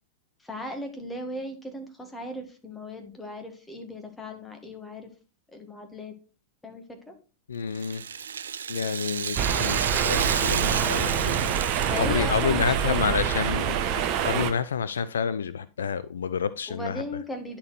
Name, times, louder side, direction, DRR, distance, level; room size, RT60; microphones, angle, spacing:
voice 1, 0.4-5.1 5.5-6.1 6.6-7.1 11.8-13.6 16.7-17.6, left 1 dB, 10° left, 1.7 m, -37 dB
voice 2, 7.5-8.0 8.7-17.0, left 6 dB, 70° left, 0.3 m, -29 dB
Rattle (instrument), 7.7-13.0 13.3-13.4 14.2-14.3, right 7 dB, 70° right, 0.3 m, -32 dB
sound 1, 9.4-14.5, right 8 dB, 40° right, 1.0 m, -26 dB
10.5 x 4.3 x 4.4 m
figure-of-eight pair, 90°, 0 cm